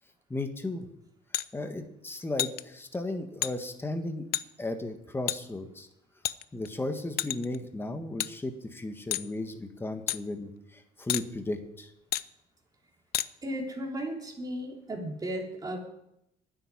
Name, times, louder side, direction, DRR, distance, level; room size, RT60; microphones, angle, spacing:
voice 1, 0.3-0.9 1.5-4.2 4.6-5.9 6.5-11.9, left 2 dB, 15° left, 6 dB, 1.6 m, -35 dB
sound 1, 1.3-1.5 2.4-2.6 3.4-3.5 4.3-4.5 5.3-5.4 6.2-6.7 7.2-7.6 8.2-8.3 9.1-9.3 10.1-10.2 11.1-11.3 12.1-12.3 13.1-13.3, left 14 dB, 65° left, 0.5 m, -30 dB
voice 2, 13.4-15.8, right 1 dB, 20° right, 1 dB, 3.3 m, -35 dB
10.0 x 8.1 x 9.8 m, 0.82 s
cardioid pair, 110°, 17 cm